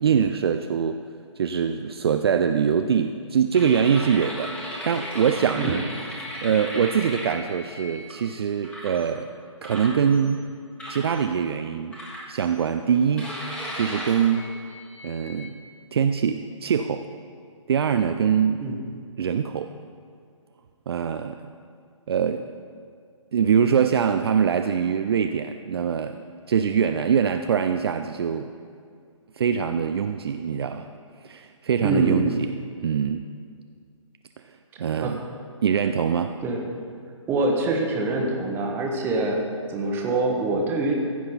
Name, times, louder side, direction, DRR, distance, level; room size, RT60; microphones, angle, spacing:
voice 1, 0.0-1.0 1.4-4.5 4.8-5.8 6.2-9.3 9.6-10.4 10.9-11.9 12.3-13.3 13.7-14.5 15.0-15.6 15.9-17.0 17.7-18.6 19.2-19.7 20.9-21.5 22.1-22.5 23.3-26.2 26.5-28.5 29.4-30.9 31.2-32.5 32.8-33.2 34.8-35.2 35.6-36.3, right 7 dB, 50° right, 7 dB, 0.4 m, -23 dB
sound 1, 3.5-8.1 8.6-9.0 9.6-10.4 10.8-11.2 11.9-12.6 13.2-15.5, equal, 5° left, 1.4 m, -36 dB
voice 2, 31.8-32.3 35.0-35.2 36.4-36.6 37.3-39.4 39.7-41.0, right 2 dB, 15° right, 1 dB, 1.1 m, -25 dB
14.5 x 6.0 x 4.3 m, 2.2 s
figure-of-eight pair, 140°, 17 cm